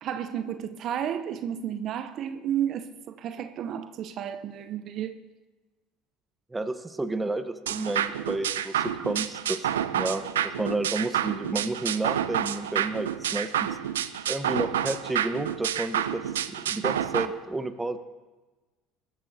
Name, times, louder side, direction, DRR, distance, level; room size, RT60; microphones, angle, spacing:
voice 1, 0.0-5.2, right 9 dB, 55° right, 0.8 m, -32 dB
voice 2, 6.5-9.7 9.9-13.7 14.3-16.2 16.6-18.0, right 2 dB, 15° right, 1.1 m, -31 dB
sound 1, 7.7-17.3, right 10 dB, 85° right, 0.5 m, -29 dB
22.5 x 12.5 x 2.8 m
hypercardioid pair, 65°, 0 cm